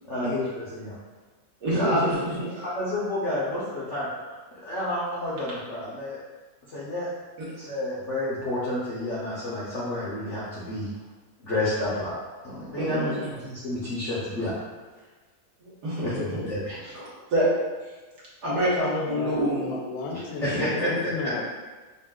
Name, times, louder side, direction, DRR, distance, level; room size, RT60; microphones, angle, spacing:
voice 1, 0.1-0.9 1.7-2.0 2.5-4.1 4.5-6.2 6.7-7.1 7.6-10.9 11.4-12.1 12.4-13.1 13.4-14.5 16.0-16.9 20.4-21.1, left 1 dB, 65° left, -8 dB, 0.7 m, -30 dB
voice 2, 1.6-2.0 12.8-13.3 15.6-16.1 16.9-17.0 17.3-17.5 18.4-19.7 20.4-20.6, right 1 dB, 55° right, -7 dB, 1.6 m, -26 dB
voice 3, 19.1-21.4, left 4 dB, 85° left, 0 dB, 1.4 m, -34 dB
5.3 x 2.8 x 2.3 m, 1.3 s
omnidirectional pair, 2.2 m